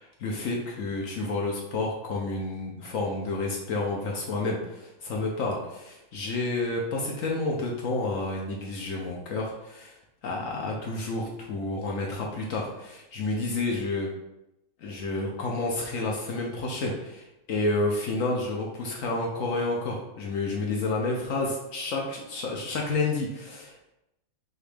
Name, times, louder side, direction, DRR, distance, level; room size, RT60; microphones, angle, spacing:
voice 1, 0.0-14.1 14.8-23.9, left 2 dB, 75° left, -1 dB, 0.7 m, -30 dB
6.0 x 2.4 x 3.4 m, 0.89 s
omnidirectional pair, 2.2 m